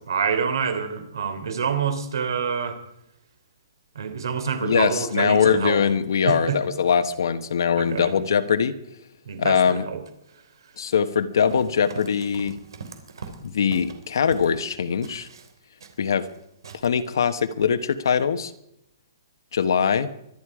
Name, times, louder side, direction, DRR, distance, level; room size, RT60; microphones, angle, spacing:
voice 1, 0.1-2.8 3.9-5.8 6.2-6.6 7.8-8.1 9.2-10.0, right 6 dB, 70° right, 8 dB, 3.3 m, -27 dB
voice 2, 4.6-8.7 9.4-9.8 10.8-12.6 13.4-15.3 16.0-16.3 16.8-18.5 19.5-20.1, left 7 dB, 65° left, 10 dB, 1.3 m, -22 dB
Run, 11.3-14.7 15.0-16.4 16.6-16.9, right 4 dB, 90° right, 3.3 m, -41 dB
24.5 x 11.0 x 4.9 m, 0.80 s
hypercardioid pair, 175°, 2 cm